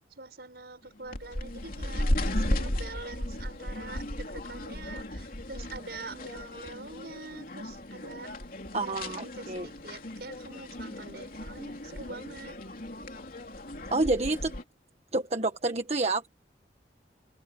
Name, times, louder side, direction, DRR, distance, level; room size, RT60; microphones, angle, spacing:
voice 1, 0.1-8.3 8.7-12.6, right 3 dB, 60° right, 6.8 m, -45 dB
sound 1, 1.0-14.6, left 1 dB, 55° left, 3.4 m, -35 dB
voice 2, 8.7-9.7 13.9-14.6 15.1-16.3, right 2 dB, 40° right, 1.5 m, -28 dB
head